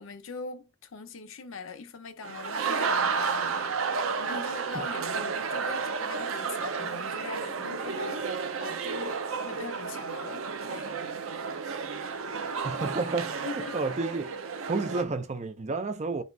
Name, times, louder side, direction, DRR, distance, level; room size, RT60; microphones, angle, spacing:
voice 1, 0.0-10.9 13.4-13.8, left 4 dB, 75° left, 0.6 m, -42 dB
sound 1, 2.2-15.0, right 5 dB, 75° right, 0.6 m, -32 dB
voice 2, 12.6-14.3 14.7-16.2, right 3 dB, 35° right, 0.5 m, -31 dB
4.1 x 2.4 x 4.5 m
head